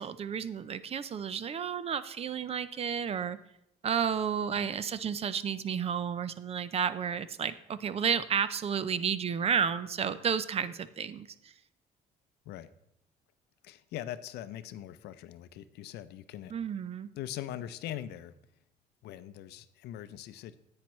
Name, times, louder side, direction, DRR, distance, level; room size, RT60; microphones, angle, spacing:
voice 1, 0.0-3.4 3.8-11.5 16.5-17.1, right 7 dB, 35° right, 15 dB, 0.5 m, -32 dB
voice 2, 13.6-16.5 17.1-18.3 19.0-20.6, left 12 dB, 75° left, 13 dB, 0.5 m, -41 dB
10.5 x 8.8 x 3.1 m, 0.78 s
cardioid pair, 110°, 17 cm